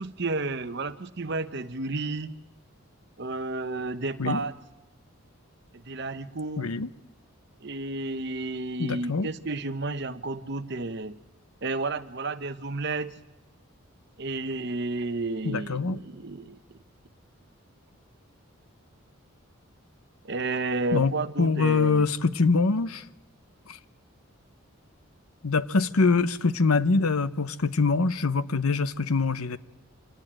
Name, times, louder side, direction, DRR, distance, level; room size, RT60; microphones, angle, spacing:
voice 1, 0.0-2.4 3.2-4.5 5.7-6.7 7.6-11.2 11.6-13.2 14.2-16.8 20.2-22.1, right 3 dB, 50° right, 11 dB, 0.9 m, -32 dB
voice 2, 6.6-6.9 8.8-9.3 15.4-16.0 20.9-21.1 21.4-23.0 23.7-23.8 25.4-29.6, left 4 dB, 85° left, 14 dB, 0.9 m, -24 dB
26.0 x 18.5 x 8.9 m, 1.1 s
head